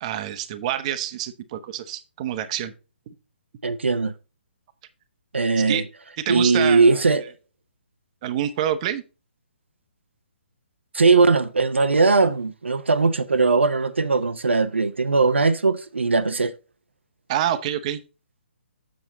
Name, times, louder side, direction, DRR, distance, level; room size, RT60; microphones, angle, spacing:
voice 1, 0.0-2.7 5.7-5.8 6.2-7.0 8.2-9.0 17.3-18.0, right 11 dB, 35° right, 0.9 m, -27 dB
voice 2, 3.6-4.1 5.3-5.8 6.3-7.2 10.9-16.5, right 4 dB, 80° right, 0.7 m, -19 dB
7.6 x 6.8 x 4.0 m
figure-of-eight pair, 135°, 6 cm